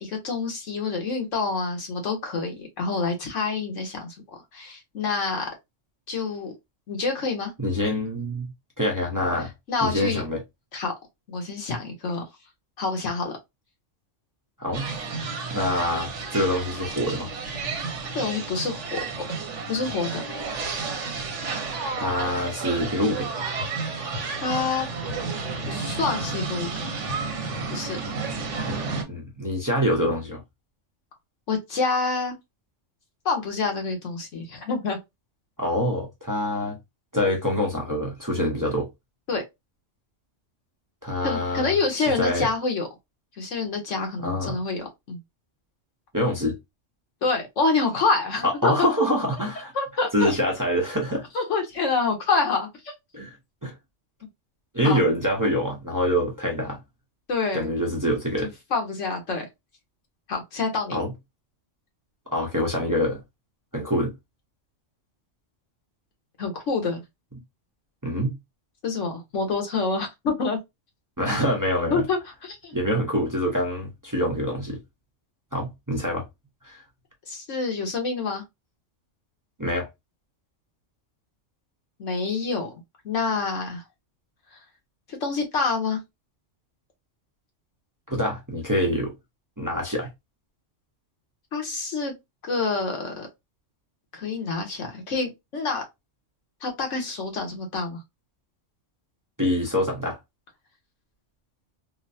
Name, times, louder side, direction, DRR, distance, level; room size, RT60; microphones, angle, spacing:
voice 1, 0.0-5.5 6.1-6.5 6.9-7.5 9.7-10.2 10.7-10.9 11.3-12.2 12.8-13.3 18.1-19.0 19.7-20.2 24.4-24.9 25.7-26.9 27.7-28.0 31.5-32.3 33.2-35.0 39.3-39.4 41.2-42.9 43.4-45.2 47.2-48.9 49.7-50.3 51.3-52.9 54.8-55.0 57.3-57.7 58.4-59.5 60.3-61.0 66.4-67.0 68.8-70.6 71.9-72.7 77.3-78.4 82.0-82.7 83.0-83.8 85.1-86.0 91.5-92.1 92.4-93.3 94.1-95.8 96.6-98.0, left 4 dB, 80° left, 1.5 m, -27 dB
voice 2, 7.6-8.5 8.8-9.5 9.8-10.4 14.6-14.9 15.5-17.3 22.0-23.3 28.6-28.8 29.1-30.4 35.6-36.8 37.1-38.9 41.0-41.7 42.2-42.5 44.2-44.6 46.1-46.6 48.4-49.7 50.1-51.2 53.1-53.4 53.6-53.7 54.7-56.8 57.5-58.5 60.9-61.1 62.3-63.2 63.7-64.1 68.0-68.4 71.2-72.0 72.7-74.8 75.5-76.2 76.6-76.8 79.6-79.9 88.1-89.1 89.6-90.1 99.4-100.2, equal, 20° right, 0.8 m, -25 dB
sound 1, 14.7-29.0, right 4 dB, 75° right, 1.1 m, -31 dB
3.7 x 2.1 x 2.6 m
omnidirectional pair, 1.3 m